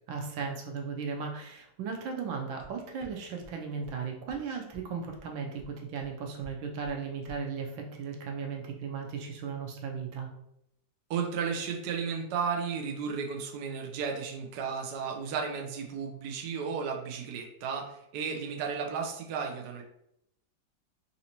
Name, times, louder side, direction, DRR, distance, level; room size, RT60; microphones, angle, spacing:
voice 1, 0.1-10.3, right 5 dB, 90° right, 1 dB, 1.5 m, -36 dB
sound 1, 2.6-2.7 3.0-3.1 3.4-3.5 3.8-3.9 4.3-4.4 4.7-4.8 5.1-5.2 5.6-5.7 6.0-6.1 6.4-6.5 6.8-6.9 7.3-7.4, equal, 5° left, 0.4 m, -52 dB
voice 2, 11.1-19.8, right 6 dB, 70° right, 2 dB, 1.1 m, -34 dB
4.1 x 2.6 x 2.8 m, 0.78 s
omnidirectional pair, 2.0 m